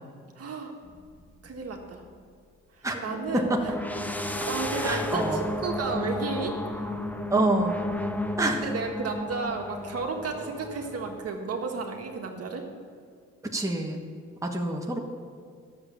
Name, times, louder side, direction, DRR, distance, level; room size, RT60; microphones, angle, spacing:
voice 1, 0.4-0.7 1.4-2.0 2.7-3.5 4.2-6.9 8.6-12.6, right 4 dB, 50° right, 2 dB, 1.7 m, -33 dB
sound 1, 0.9-1.0 3.0-11.3, left 1 dB, 5° left, 0.8 m, -33 dB
voice 2, 4.8-5.4 7.3-7.8 8.4-8.7 13.5-14.0 14.4-15.0, right 2 dB, 10° right, 1 dB, 1.3 m, -26 dB
11.5 x 7.4 x 7.2 m, 2.1 s
cardioid pair, 90°, 30 cm